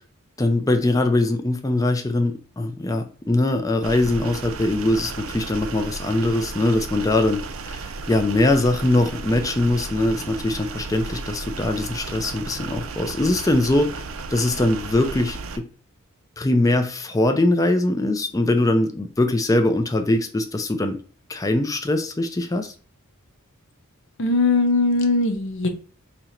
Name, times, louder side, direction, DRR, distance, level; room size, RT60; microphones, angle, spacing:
voice 1, 0.4-7.8 8.1-13.9 14.3-15.7 16.4-21.0 21.3-22.7, left 2 dB, 15° left, 0.4 m, -22 dB
sound 1, 3.8-15.6, right 4 dB, 65° right, 0.5 m, -34 dB
voice 2, 24.2-25.7, left 3 dB, 60° left, 0.6 m, -20 dB
2.8 x 2.5 x 4.3 m
head